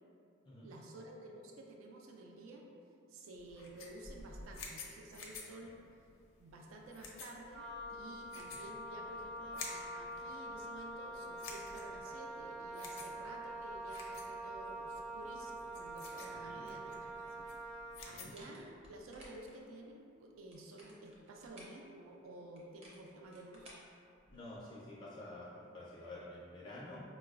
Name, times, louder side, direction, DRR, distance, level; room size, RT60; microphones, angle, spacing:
voice 1, 0.6-2.7 3.1-5.8 6.4-17.5 18.0-23.7, right 1 dB, 80° right, 1 dB, 0.4 m, -52 dB
sound 1, 3.3-18.5, left 4 dB, 80° left, 0.5 m, -52 dB
Wind instrument woodwind instrument, 7.5-18.1, right 1 dB, 65° right, 0.9 m, -45 dB
sound 2, 18.1-19.6 20.3-21.8 22.6-24.6, right 1 dB, 30° right, 0.5 m, -58 dB
voice 2, 24.3-27.0, left 1 dB, 25° left, -7 dB, 0.4 m, -49 dB
4.5 x 2.0 x 2.3 m, 2.4 s
head